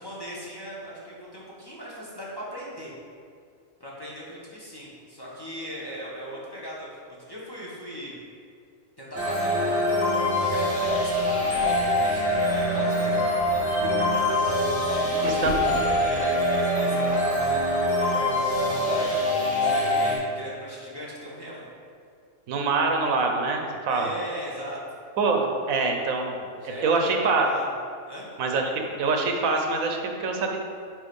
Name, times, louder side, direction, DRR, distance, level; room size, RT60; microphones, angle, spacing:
voice 1, 0.0-2.9 3.8-8.2 9.0-10.0 10.4-13.9 14.9-18.3 18.6-19.3 19.6-21.7 23.9-24.8 26.6-27.7 28.1-28.3, equal, 20° left, -7 dB, 1.4 m, -38 dB
sound 1, 9.1-20.2, left 1 dB, 10° right, 1.6 m, -24 dB
sound 2, 10.8-16.5, equal, 60° left, 1.5 m, -41 dB
voice 2, 15.2-15.6 22.5-24.1 25.2-26.4 26.8-27.5 28.4-30.6, right 3 dB, 80° right, 3 dB, 1.2 m, -25 dB
9.0 x 3.1 x 5.3 m, 2.2 s
omnidirectional pair, 1.4 m